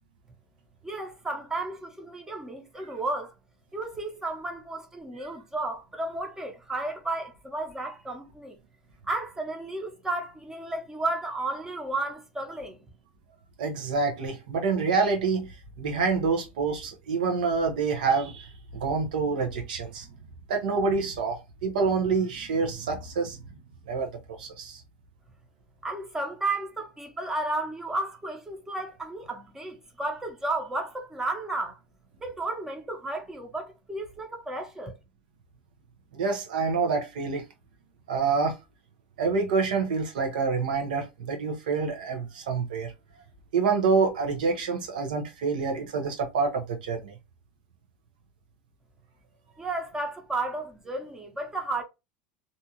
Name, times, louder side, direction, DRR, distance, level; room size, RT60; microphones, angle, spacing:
voice 1, 0.8-3.3 3.7-8.6 9.0-12.9 25.8-31.8 32.2-34.9 49.6-51.8, right 2 dB, 10° right, 0.7 m, -33 dB
voice 2, 13.6-20.1 20.5-23.4 23.9-24.1 24.4-24.8 36.1-37.4 38.1-38.6 39.2-42.9 43.5-47.1, right 4 dB, 90° right, 0.8 m, -27 dB
2.7 x 2.4 x 2.8 m
supercardioid pair, 120°, 4 cm